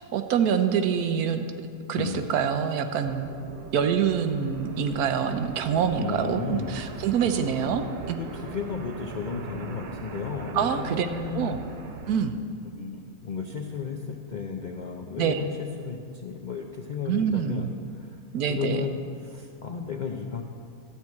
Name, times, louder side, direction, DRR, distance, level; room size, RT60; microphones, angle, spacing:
voice 1, 0.1-1.4 1.9-3.3 3.7-8.2 10.5-11.1 11.3-11.6 12.1-12.4 15.2-15.4 17.1-17.7 18.3-18.8, right 7 dB, 90° right, 8 dB, 1.2 m, -25 dB
sound 1, 3.0-12.2, right 5 dB, 60° right, 0.5 m, -40 dB
voice 2, 6.0-7.5 8.2-11.7 12.7-18.2 18.5-20.4, left 6 dB, 65° left, 2 dB, 0.4 m, -34 dB
12.5 x 4.6 x 8.3 m, 2.3 s
omnidirectional pair, 1.6 m